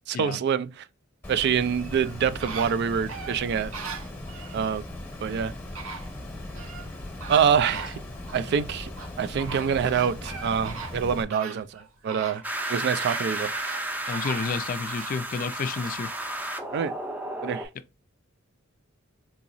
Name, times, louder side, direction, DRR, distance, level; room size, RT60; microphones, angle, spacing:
voice 1, 0.1-0.8 1.3-3.7 4.5-4.8 5.2-5.5 7.3-8.0 8.3-8.9 9.2-12.4 12.7-13.5 16.7-16.9 17.4-17.7, right 7 dB, 55° right, 0.3 m, -25 dB
Water, 1.2-11.2, left 1 dB, 10° left, 0.9 m, -39 dB
sound 1, 1.8-4.6 5.4-5.5 5.7-6.9 7.2-8.4 9.0-15.2 15.7-15.8, right 5 dB, 75° right, 0.8 m, -40 dB
sound 2, 12.4-17.6, right 1 dB, 10° right, 0.5 m, -33 dB
voice 2, 14.1-16.1, left 5 dB, 40° left, 0.3 m, -30 dB
3.9 x 2.8 x 2.5 m
head